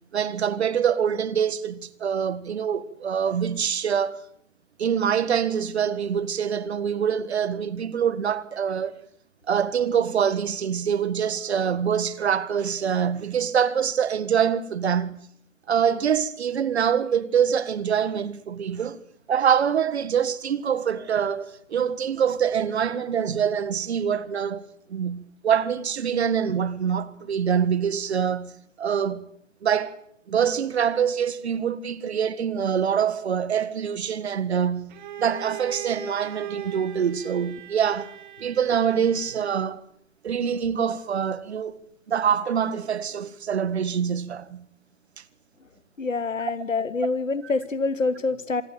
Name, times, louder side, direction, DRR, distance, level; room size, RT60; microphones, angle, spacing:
voice 1, 0.1-4.2 4.8-9.0 9.5-15.2 15.7-19.0 19.3-28.5 28.8-29.3 29.6-30.0 30.3-34.9 35.2-38.1 38.4-39.8 40.2-41.8 42.1-44.7, right 8 dB, 55° right, 1.8 m, -25 dB
Bowed string instrument, 34.9-39.7, right 10 dB, 35° right, 3.9 m, -40 dB
voice 2, 46.0-48.6, left 3 dB, 80° left, 2.6 m, -26 dB
26.5 x 19.5 x 9.3 m
figure-of-eight pair, 135°, 38 cm